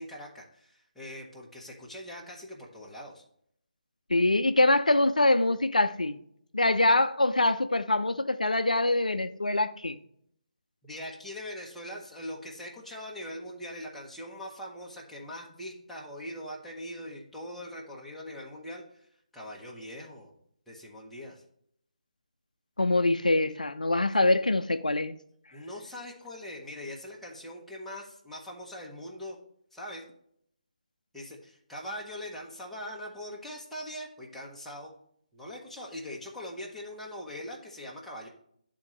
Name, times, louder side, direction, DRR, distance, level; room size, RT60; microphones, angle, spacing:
voice 1, 0.0-3.2 10.8-19.1 19.3-20.3 20.7-21.4 25.5-29.4 29.7-30.0 31.1-34.9 35.3-38.3, left 1 dB, ahead, 1.0 m, -42 dB
voice 2, 4.1-6.2 6.5-10.0 22.8-25.2, left 2 dB, 80° left, 0.4 m, -24 dB
11.0 x 3.8 x 3.1 m
figure-of-eight pair, 145°, 4 cm